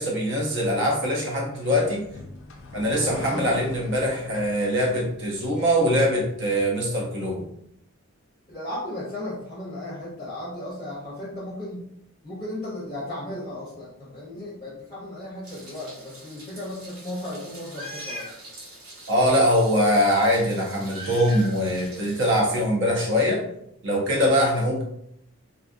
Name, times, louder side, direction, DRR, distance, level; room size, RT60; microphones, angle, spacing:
voice 1, 0.0-2.0 2.7-7.4 19.1-23.4 23.8-24.8, equal, 55° right, -2 dB, 0.7 m, -22 dB
sound 1, 1.5-6.2, left 2 dB, 60° left, 0.4 m, -41 dB
voice 2, 3.3-3.6 8.5-11.8 12.2-18.3, left 1 dB, 20° left, -6 dB, 0.6 m, -35 dB
Meow, 15.4-22.4, equal, 80° right, 0.9 m, -42 dB
2.6 x 2.3 x 2.5 m, 0.74 s
head